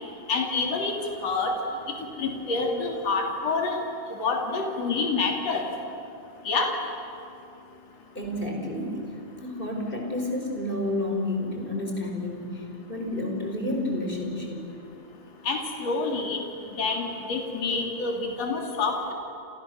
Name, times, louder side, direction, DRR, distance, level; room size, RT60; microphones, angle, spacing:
voice 1, 0.3-0.9 1.2-1.5 2.2-3.8 4.2-5.6 6.5-6.7 15.5-16.4 16.8-19.1, left 4 dB, 55° left, 1 dB, 4.2 m, -27 dB
voice 2, 8.1-14.7, left 1 dB, 15° left, 1 dB, 5.0 m, -30 dB
29.0 x 29.0 x 7.1 m, 2.6 s
omnidirectional pair, 3.5 m